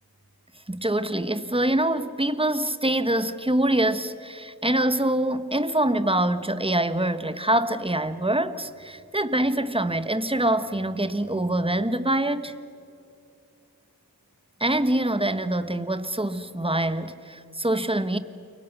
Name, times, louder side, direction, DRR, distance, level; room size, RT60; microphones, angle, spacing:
voice 1, 0.7-12.5 14.6-18.2, right 1 dB, 15° right, 1.3 m, -25 dB
29.0 x 23.5 x 6.8 m
wide cardioid pair, 40°, 37 cm